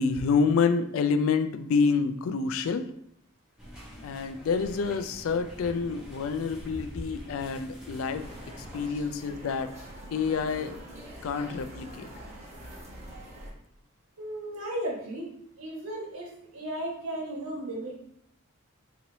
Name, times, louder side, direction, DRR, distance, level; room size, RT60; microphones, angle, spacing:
voice 1, 0.0-2.9 4.0-8.3 8.7-9.7 10.1-10.8 11.2-12.1, left 5 dB, 70° left, 9 dB, 0.3 m, -27 dB
sound 1, 3.6-8.9, equal, 5° right, 0.8 m, -44 dB
sound 2, 8.2-13.5, right 1 dB, 30° right, 0.9 m, -45 dB
voice 2, 14.2-15.3 15.6-18.0, right 1 dB, 80° right, -2 dB, 1.2 m, -35 dB
3.1 x 2.9 x 3.8 m, 0.69 s
head